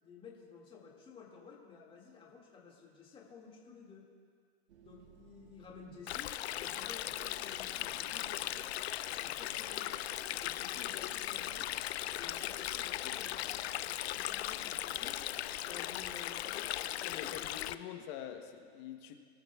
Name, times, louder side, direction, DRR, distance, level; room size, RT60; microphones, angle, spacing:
voice 1, 0.0-4.1 4.8-8.7 9.2-10.0 10.3-11.7 12.1-15.2 15.6-17.3, left 5 dB, 15° left, -2 dB, 2.2 m, -53 dB
sound 1, 4.7-16.3, right 6 dB, 85° right, 1.3 m, -60 dB
Stream, 6.1-17.7, left 14 dB, 75° left, 0.6 m, -38 dB
voice 2, 17.1-19.1, left 10 dB, 45° left, 5 dB, 1.2 m, -45 dB
23.0 x 13.0 x 2.4 m, 2.1 s
supercardioid pair, 140°, 32 cm